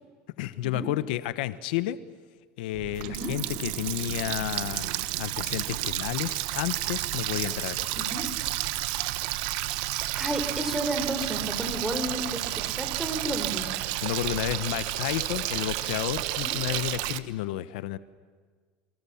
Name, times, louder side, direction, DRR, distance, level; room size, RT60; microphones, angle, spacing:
voice 1, 0.4-2.0 2.6-4.9 5.2-8.1 14.0-18.0, left 14 dB, 90° left, 14 dB, 1.0 m, -31 dB
Water tap faucet, 2.7-17.2, right 17 dB, 75° right, 1.1 m, -31 dB
voice 2, 7.9-8.3 10.1-13.7 16.4-16.6, right 1 dB, 5° right, 7 dB, 4.4 m, -32 dB
28.0 x 25.0 x 7.2 m, 1.5 s
supercardioid pair, 125°, 5 cm